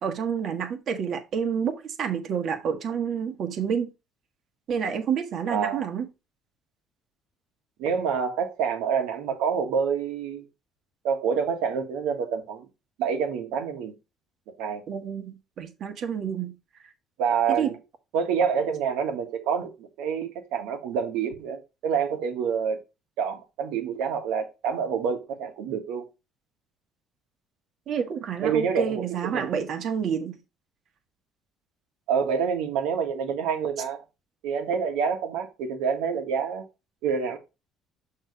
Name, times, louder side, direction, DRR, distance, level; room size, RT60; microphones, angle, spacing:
voice 1, 0.0-3.9 4.7-6.1 14.9-16.5 17.6-17.7 27.9-30.4, right 7 dB, 60° right, 1.5 m, -29 dB
voice 2, 5.5-5.8 7.8-10.4 11.0-12.7 13.0-13.9 14.6-14.8 17.2-17.7 18.1-22.8 23.2-26.0 28.4-29.7 32.1-34.0 34.4-36.6 37.0-37.4, right 6 dB, 80° right, 1.6 m, -27 dB
6.7 x 3.6 x 4.8 m
supercardioid pair, 70°, 0 cm